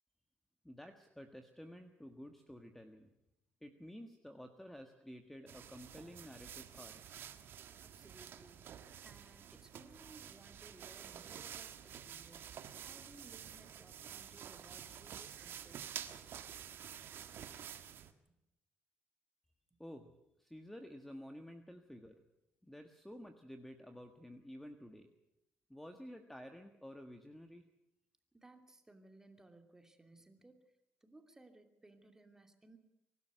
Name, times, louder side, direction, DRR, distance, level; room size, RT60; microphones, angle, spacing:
voice 1, 0.6-3.1 3.6-7.0 19.8-20.1 20.4-22.2 22.6-25.1 25.7-27.6, equal, 5° left, 6 dB, 1.5 m, -52 dB
sound 1, 5.5-18.1, right 9 dB, 65° right, 1.5 m, -50 dB
voice 2, 7.8-8.8 9.0-16.0 28.3-30.6 31.0-32.8, right 2 dB, 10° right, 6 dB, 2.7 m, -61 dB
23.0 x 12.5 x 9.3 m, 0.88 s
cardioid pair, 95°, 4 cm